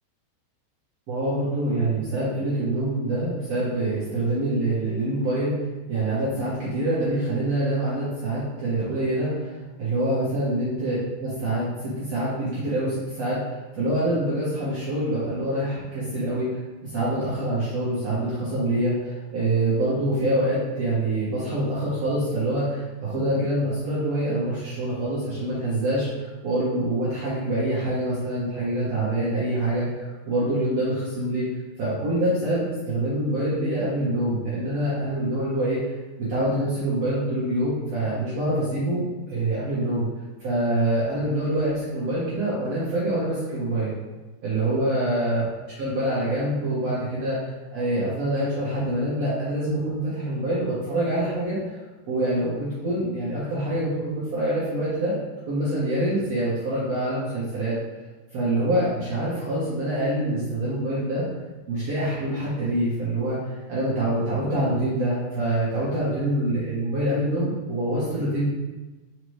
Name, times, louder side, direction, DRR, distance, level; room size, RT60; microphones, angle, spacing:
voice 1, 1.1-5.6 5.9-31.5 31.8-35.8 36.2-40.1 40.4-43.9 44.4-45.4 45.8-47.4 47.7-51.8 52.1-55.2 55.5-57.7 58.3-61.2 61.7-63.4 63.7-68.4, right 1 dB, 55° right, -10 dB, 2.1 m, -25 dB
5.9 x 5.1 x 3.4 m, 1.2 s
omnidirectional pair, 4.7 m